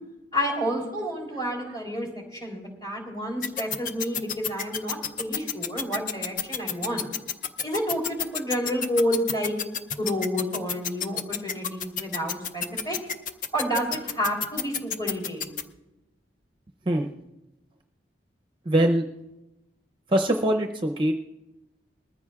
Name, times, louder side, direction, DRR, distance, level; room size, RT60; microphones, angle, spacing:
voice 1, 0.3-7.1 7.6-9.5 9.9-13.0 13.5-15.5, equal, 25° left, 0 dB, 3.3 m, -29 dB
sound 1, 3.4-15.6, left 7 dB, 45° left, 0.6 m, -29 dB
voice 2, 18.6-19.0 20.1-21.1, right 1 dB, 25° right, 3 dB, 0.6 m, -23 dB
21.0 x 14.0 x 2.4 m, 0.98 s
head